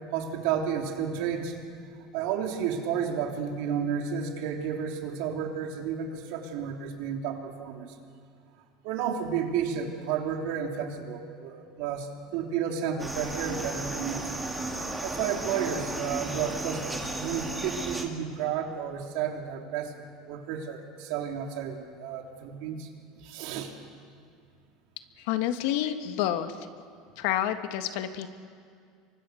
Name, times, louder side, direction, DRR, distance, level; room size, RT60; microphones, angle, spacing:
voice 1, 0.1-7.9 8.8-14.3 15.0-22.9 23.2-23.7, right 8 dB, 70° right, 2 dB, 3.2 m, -32 dB
sound 1, 13.0-18.1, right 2 dB, 5° right, 2.6 m, -34 dB
voice 2, 25.2-26.7 27.2-28.3, left 11 dB, 70° left, 8 dB, 1.7 m, -29 dB
28.5 x 24.0 x 6.4 m, 2.2 s
supercardioid pair, 140°, 0 cm